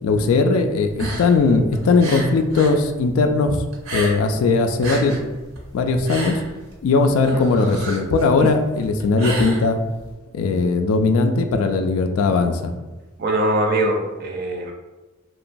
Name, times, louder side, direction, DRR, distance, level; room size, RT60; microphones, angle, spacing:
voice 1, 0.0-3.6 3.9-5.2 5.7-6.4 6.8-9.8 10.3-12.7, left 3 dB, 85° left, 7 dB, 0.3 m, -19 dB
sound 1, 0.9-2.8 3.1-4.4 4.7-10.1, right 1 dB, 90° right, 0.7 m, -31 dB
voice 2, 13.2-14.7, right 1 dB, 50° right, 1 dB, 0.4 m, -21 dB
2.9 x 2.2 x 2.5 m, 1.1 s
head